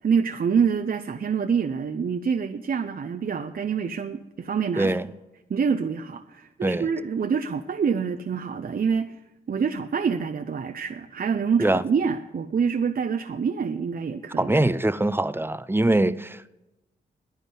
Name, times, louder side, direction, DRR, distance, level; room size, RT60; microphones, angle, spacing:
voice 1, 0.0-5.0 5.5-9.2 9.5-14.5, right 6 dB, 50° right, 0.7 m, -26 dB
voice 2, 4.8-5.1 6.6-6.9 11.6-11.8 14.4-16.5, right 1 dB, 10° right, 0.7 m, -23 dB
10.5 x 9.9 x 9.3 m
supercardioid pair, 45°, 20 cm